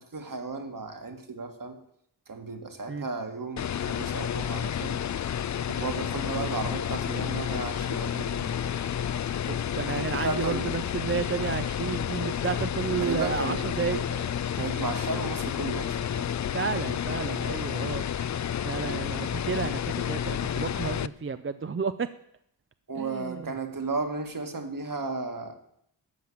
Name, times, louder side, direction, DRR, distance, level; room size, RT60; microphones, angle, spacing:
voice 1, 0.0-1.8 2.3-5.0 5.7-8.8 9.9-10.7 13.0-14.3 14.6-16.3 22.9-25.5, right 3 dB, 50° right, 5 dB, 1.8 m, -34 dB
sound 1, 3.6-21.1, left 9 dB, 45° left, 0.4 m, -30 dB
voice 2, 9.5-14.0 14.6-14.7 16.5-18.0 18.6-22.1 23.0-23.6, right 5 dB, 30° right, 11 dB, 0.5 m, -32 dB
13.5 x 5.8 x 8.7 m, 0.73 s
wide cardioid pair, 70°, 41 cm